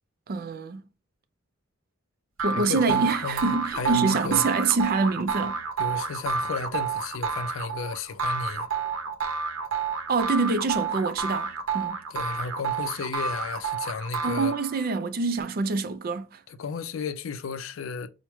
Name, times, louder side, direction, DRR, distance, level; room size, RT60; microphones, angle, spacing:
voice 1, 0.3-0.8 2.4-5.6 10.1-12.0 14.2-16.4, right 4 dB, 50° right, 0.4 m, -26 dB
sound 1, 2.4-14.9, right 5 dB, 85° right, 0.7 m, -30 dB
voice 2, 2.5-4.5 5.8-8.7 12.1-14.5 16.5-18.1, left 4 dB, 80° left, 0.4 m, -33 dB
4.6 x 2.1 x 3.0 m
head